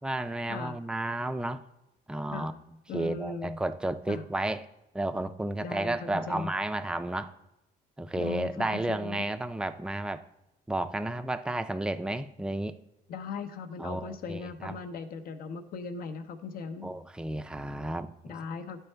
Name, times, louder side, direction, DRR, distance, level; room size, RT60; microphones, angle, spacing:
voice 1, 0.0-1.6 2.1-2.5 2.9-4.7 4.9-7.3 8.0-10.2 10.7-12.8 13.8-14.8 16.8-18.3, right 2 dB, 5° right, 10 dB, 0.4 m, -32 dB
voice 2, 2.9-3.6 4.1-4.2 5.6-6.5 8.1-9.2 13.1-16.9 18.2-18.8, left 5 dB, 60° left, 8 dB, 0.8 m, -38 dB
12.0 x 4.5 x 3.3 m, 0.89 s
cardioid pair, 110°, 17 cm